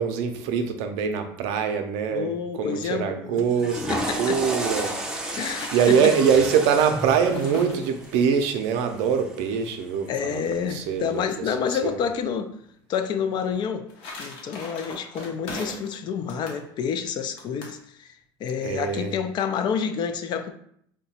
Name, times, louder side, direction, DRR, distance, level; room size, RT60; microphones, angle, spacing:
voice 1, 0.0-5.0 5.2-5.4 5.7-12.0 18.6-19.1, right 7 dB, 85° right, 6 dB, 0.5 m, -24 dB
voice 2, 2.1-3.5 3.9-4.4 5.4-6.1 10.1-12.5 12.9-13.9 14.2-18.1 18.4-20.5, left 7 dB, 50° left, 8 dB, 0.4 m, -28 dB
Water / Toilet flush, 3.5-9.7, right 1 dB, 5° right, 0.5 m, -32 dB
sound 1, 3.7-4.3 5.1-8.4 13.5-16.0 16.3-16.6 17.4-17.8, left 2 dB, 80° left, 0.9 m, -40 dB
2.8 x 2.2 x 4.1 m, 0.69 s
cardioid pair, 115°, 9 cm